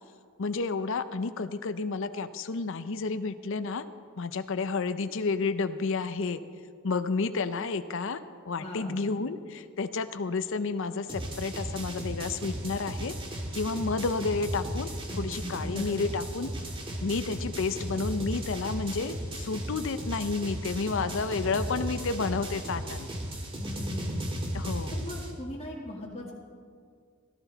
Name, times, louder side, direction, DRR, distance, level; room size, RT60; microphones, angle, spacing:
voice 1, 0.4-3.8 4.2-6.4 6.8-8.2 8.5-14.9 15.2-16.5 17.0-23.1 24.5-25.0, left 4 dB, 65° left, 11 dB, 0.6 m, -31 dB
voice 2, 8.6-9.0 15.1-15.9 16.6-16.7 23.6-24.3 24.9-26.3, left 1 dB, 30° left, -5 dB, 1.9 m, -39 dB
sound 1, 11.1-25.3, right 1 dB, 25° right, 2.0 m, -35 dB
16.5 x 14.5 x 4.0 m, 2.1 s
head